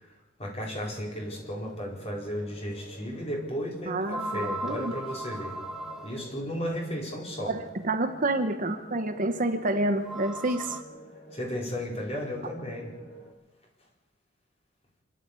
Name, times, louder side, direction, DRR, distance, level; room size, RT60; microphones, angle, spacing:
voice 1, 0.4-5.6 6.0-7.5 11.3-12.9, equal, 35° left, -1 dB, 4.7 m, -34 dB
sound 1, 0.8-13.3, right 2 dB, 60° left, 6.8 m, -49 dB
sound 2, 2.3-2.4 4.0-6.4 8.3-8.4 9.9-10.8, right 1 dB, 5° right, 1.2 m, -37 dB
voice 2, 3.9-4.9 7.4-10.8, right 2 dB, 45° right, 7 dB, 1.1 m, -28 dB
25.5 x 12.5 x 8.4 m, 0.96 s
head